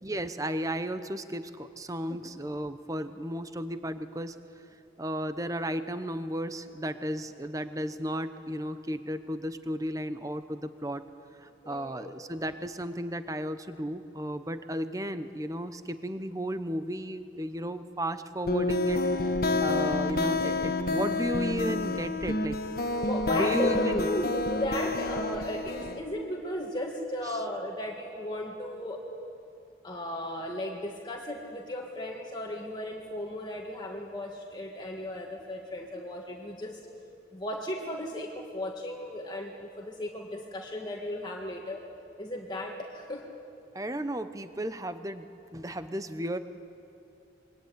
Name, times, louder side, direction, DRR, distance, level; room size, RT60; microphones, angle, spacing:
voice 1, 0.0-4.4 5.0-11.0 11.4-22.6 23.0-24.1 43.7-45.3 45.5-46.4, equal, 20° right, 10 dB, 0.9 m, -34 dB
voice 2, 11.6-12.1 23.0-29.0 29.8-36.8 37.3-41.8 42.2-43.3, left 1 dB, 25° left, 0 dB, 1.9 m, -35 dB
sound 1, 18.5-26.0, left 2 dB, 50° left, 1.4 m, -29 dB
26.0 x 23.0 x 9.5 m, 2.6 s
head